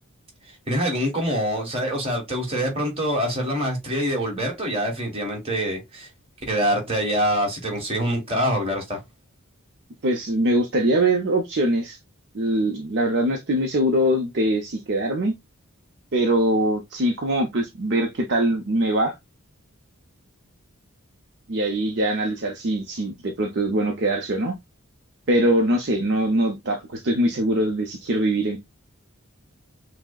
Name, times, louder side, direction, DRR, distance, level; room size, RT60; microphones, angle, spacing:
voice 1, 0.7-6.1 6.5-9.0, equal, 25° right, 1.3 m, -25 dB
voice 2, 10.0-12.0 12.3-15.3 16.1-19.1 21.5-24.6 25.3-28.6, right 1 dB, 50° right, 0.6 m, -22 dB
5.8 x 2.0 x 2.3 m
head